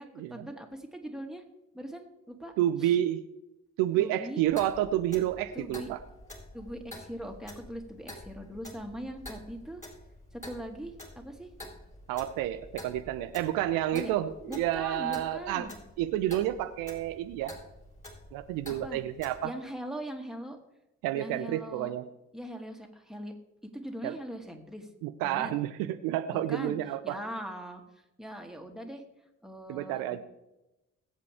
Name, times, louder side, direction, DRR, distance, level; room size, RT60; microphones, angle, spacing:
voice 1, 0.0-1.4 1.7-2.5 2.8-2.9 4.0-4.4 5.5-5.9 6.5-9.8 10.3-11.5 13.9-14.1 14.5-15.8 18.8-19.0 19.4-20.6 21.1-21.9 22.3-23.3 23.7-24.9 25.2-25.6 26.3-26.8 27.0-27.8 28.2-29.0 29.4-30.2, equal, ahead, 2 dB, 2.7 m, -41 dB
voice 2, 2.6-3.2 3.8-6.0 12.1-15.7 16.0-17.5 18.3-19.5 21.0-22.0 24.0-24.1 25.0-27.2 29.7-30.2, right 13 dB, 70° right, 10 dB, 0.7 m, -30 dB
Clock, 4.5-19.4, left 1 dB, 20° left, 4.4 m, -48 dB
21.0 x 8.3 x 3.6 m, 0.93 s
hypercardioid pair, 45°, 35 cm